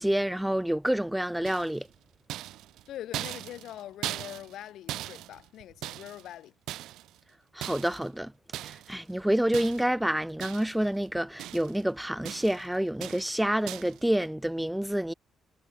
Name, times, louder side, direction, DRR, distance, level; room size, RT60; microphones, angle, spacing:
voice 1, 0.0-1.9 7.5-8.3 8.6-15.1, right 1 dB, 5° right, 0.5 m, -28 dB
sound 1, 1.4-1.9 2.3-4.6 4.9-6.3 6.7-7.2 7.6-8.1 8.5-9.0 9.5-10.0 10.4-10.9 11.1-11.8 12.2-12.7 13.0-13.4 13.7-14.0, right 14 dB, 85° right, 0.5 m, -39 dB
voice 2, 2.9-6.5, left 12 dB, 80° left, 2.3 m, -43 dB
cardioid pair, 90°, 0 cm